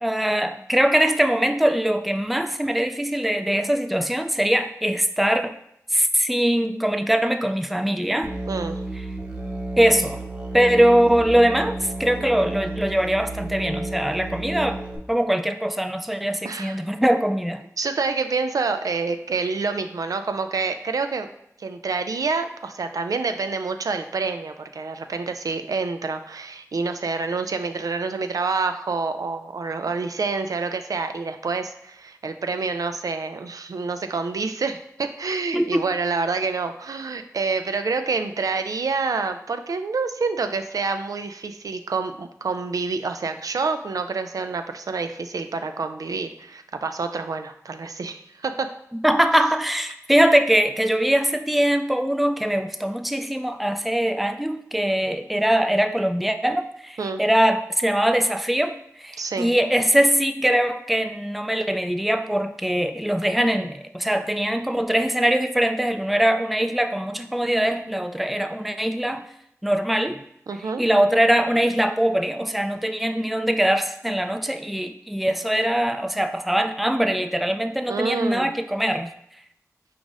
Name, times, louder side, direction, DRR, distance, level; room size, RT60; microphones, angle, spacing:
voice 1, 0.0-5.5 5.9-8.3 9.8-10.2 10.5-14.8 15.1-17.6 35.5-35.8 49.0-58.7 59.0-69.2 69.6-70.2 70.8-79.1, right 1 dB, ahead, 8 dB, 0.3 m, -22 dB
Musical instrument, 8.2-15.0, right 2 dB, 20° right, 0.9 m, -32 dB
voice 2, 8.5-8.8 16.4-16.8 17.8-21.3 21.6-48.7 57.0-57.2 59.2-59.5 70.5-70.8 77.9-78.5, right 4 dB, 80° right, 7 dB, 0.3 m, -27 dB
4.7 x 2.5 x 3.9 m, 0.75 s
wide cardioid pair, 50°, 6 cm